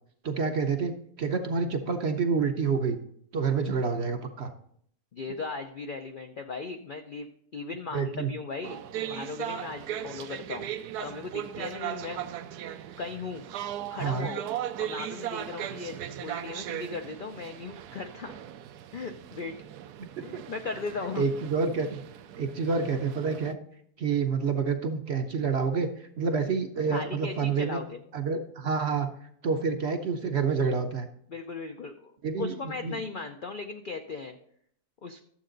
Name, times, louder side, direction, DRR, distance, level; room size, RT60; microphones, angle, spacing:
voice 1, 0.2-3.0 3.3-4.5 7.9-8.3 14.0-14.3 20.2-20.3 21.2-22.0 22.4-23.6 24.0-27.8 28.1-29.1 29.4-31.1 32.2-33.0, right 5 dB, 55° right, 6 dB, 0.8 m, -28 dB
voice 2, 5.1-12.4 13.0-13.4 13.9-14.5 14.8-18.3 18.9-19.5 20.2-21.3 26.9-28.0 31.3-32.1 32.4-34.4 35.0-35.2, left 4 dB, 70° left, 5 dB, 0.4 m, -37 dB
sound 1, 8.6-23.5, right 11 dB, 80° right, 1.1 m, -38 dB
11.5 x 7.5 x 3.9 m, 0.67 s
omnidirectional pair, 1.7 m